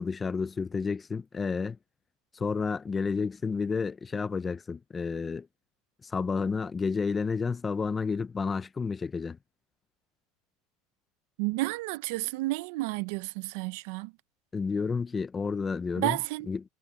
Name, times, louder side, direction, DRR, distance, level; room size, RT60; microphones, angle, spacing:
voice 1, 0.0-1.8 2.3-5.5 6.0-9.4 14.5-16.2 16.5-16.6, left 5 dB, 15° left, 0.7 m, -30 dB
voice 2, 11.4-14.1 16.0-16.5, right 21 dB, 70° right, 0.7 m, -31 dB
supercardioid pair, 140°, 0 cm